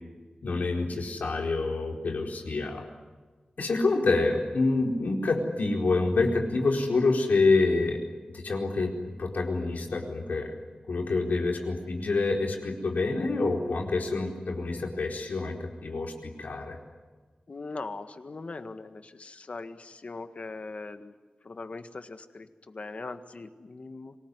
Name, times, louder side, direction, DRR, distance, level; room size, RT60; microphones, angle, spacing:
voice 1, 0.4-2.8 3.6-8.0 8.3-8.9 9.2-10.5 10.9-16.8, left 3 dB, 90° left, 2 dB, 4.4 m, -27 dB
voice 2, 17.5-21.1 21.4-24.2, left 3 dB, 55° left, 9 dB, 1.7 m, -40 dB
27.0 x 19.5 x 9.7 m, 1.4 s
wide cardioid pair, 95°, 3 cm